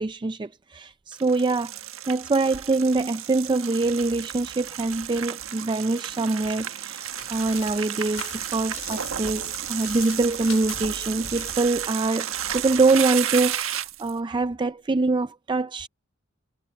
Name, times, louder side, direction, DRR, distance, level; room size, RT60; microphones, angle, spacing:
voice 1, 0.0-1.7 2.0-15.9, right 3 dB, 25° right, 0.4 m, -24 dB
sound 1, 1.1-14.1, right 10 dB, 85° right, 1.4 m, -32 dB
sound 2, 6.1-11.6, left 9 dB, 80° left, 4.3 m, -43 dB
head